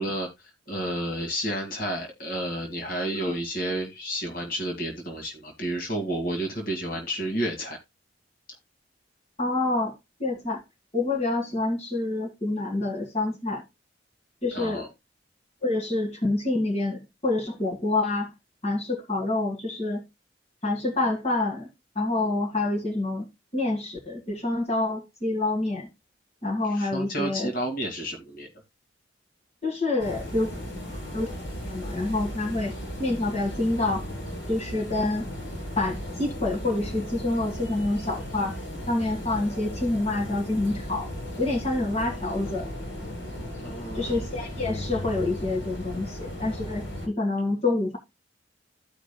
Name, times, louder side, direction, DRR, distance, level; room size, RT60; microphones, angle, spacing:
voice 1, 0.0-7.8 14.5-14.9 26.6-28.5 43.6-44.3, right 1 dB, 50° left, 2.0 m, -31 dB
voice 2, 9.4-9.9 10.2-10.6 10.9-13.6 14.4-14.9 15.6-18.3 18.6-20.0 20.6-21.7 22.0-23.3 23.5-25.9 26.4-27.5 29.6-30.5 31.1-31.3 31.6-34.1 34.5-35.3 35.8-38.6 38.9-41.1 41.4-42.7 43.9-48.0, left 2 dB, 35° left, 2.1 m, -27 dB
sound 1, 30.0-47.1, equal, 75° left, 3.4 m, -36 dB
15.0 x 5.2 x 2.2 m
head